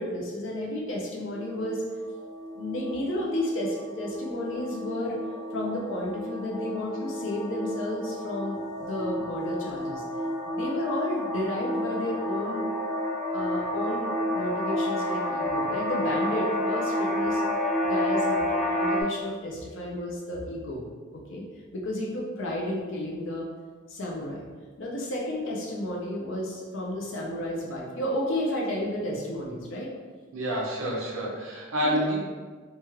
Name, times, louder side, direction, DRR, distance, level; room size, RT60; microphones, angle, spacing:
voice 1, 0.0-1.8 2.5-5.2 5.5-10.0 10.5-12.7 13.3-17.4 17.8-20.9 21.1-21.4 21.7-23.5 23.9-24.5 24.8-29.9 31.8-32.1, left 1 dB, 65° left, -3 dB, 0.6 m, -32 dB
sound 1, 1.3-19.0, left 1 dB, ahead, 0.4 m, -30 dB
voice 2, 30.3-32.2, equal, 80° right, -3 dB, 0.8 m, -28 dB
3.0 x 2.3 x 3.0 m, 1.5 s
head